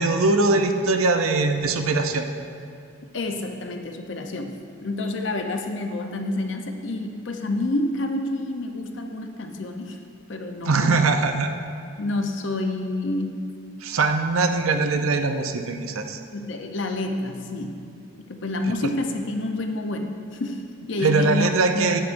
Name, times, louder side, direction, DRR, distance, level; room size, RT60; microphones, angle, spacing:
voice 1, 0.0-2.3 10.6-11.5 13.8-16.2 18.8-18.9 21.0-22.0, right 3 dB, 85° right, 6 dB, 0.6 m, -21 dB
voice 2, 3.1-10.0 10.3-11.1 12.0-13.4 16.3-17.8 18.2-22.0, left 2 dB, 60° left, 5 dB, 0.6 m, -29 dB
10.0 x 8.3 x 2.6 m, 2.4 s
head